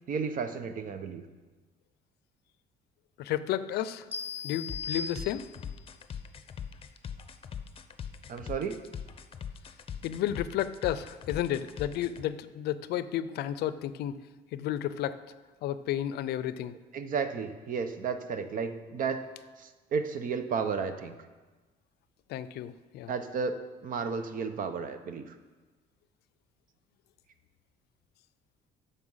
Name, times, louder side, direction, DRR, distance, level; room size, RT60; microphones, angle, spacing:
voice 1, 0.1-1.2 8.3-8.8 16.9-19.2 19.6-21.1 23.1-23.6 23.8-25.3, right 5 dB, 55° right, 9 dB, 0.9 m, -33 dB
voice 2, 3.2-4.1 4.4-5.4 10.0-14.2 14.5-15.2 15.6-16.7 22.3-23.1, left 11 dB, 75° left, 15 dB, 0.5 m, -32 dB
sound 1, 4.1-5.9, left 4 dB, 10° right, 1.6 m, -38 dB
sound 2, 4.7-12.2, left 8 dB, 35° left, 0.7 m, -41 dB
9.9 x 6.7 x 5.6 m, 1.3 s
cardioid pair, 110°, 17 cm